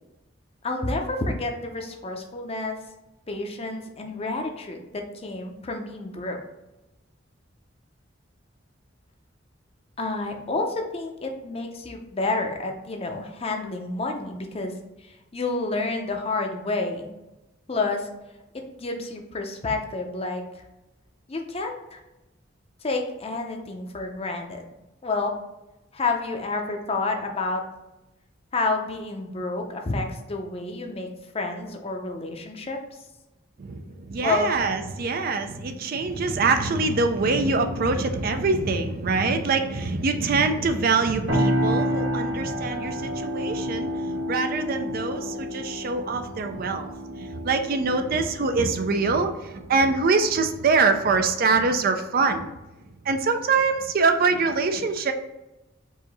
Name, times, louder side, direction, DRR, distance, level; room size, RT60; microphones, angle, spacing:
voice 1, 0.6-2.8 3.3-6.4 10.0-14.8 15.0-17.1 17.7-18.1 18.5-20.6 21.3-22.0 22.8-24.7 25.0-25.4 25.9-27.6 28.5-32.8 34.2-34.5, left 3 dB, 30° left, 3 dB, 0.6 m, -29 dB
voice 2, 33.6-52.5 53.0-55.1, right 4 dB, 50° right, 7 dB, 0.4 m, -24 dB
sound 1, 41.3-51.0, equal, 70° right, 1.2 m, -30 dB
4.8 x 2.7 x 4.0 m, 0.99 s
head